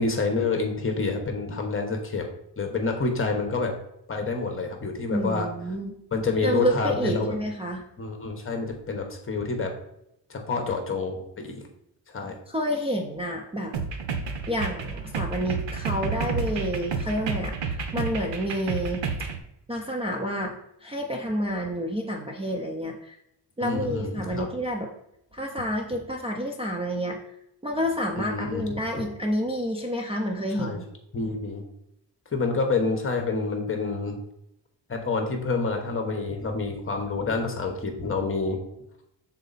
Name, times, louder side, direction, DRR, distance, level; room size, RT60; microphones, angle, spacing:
voice 1, 0.0-2.3 2.6-3.7 4.1-5.5 6.1-7.4 8.0-9.7 10.3-11.6 12.1-12.3 23.6-24.5 28.2-28.6 29.0-29.1 30.6-30.8 31.1-31.6 32.3-34.2 34.9-38.6, left 4 dB, 30° left, 3 dB, 1.0 m, -28 dB
voice 2, 5.1-6.0 6.4-7.8 12.5-14.0 14.5-19.0 19.7-20.5 20.8-23.2 23.6-24.9 25.3-27.2 27.6-30.8, equal, 15° right, 0 dB, 0.5 m, -29 dB
sound 1, 13.7-19.4, right 5 dB, 85° right, 0.9 m, -30 dB
6.3 x 4.1 x 4.0 m, 0.79 s
wide cardioid pair, 155°, 43 cm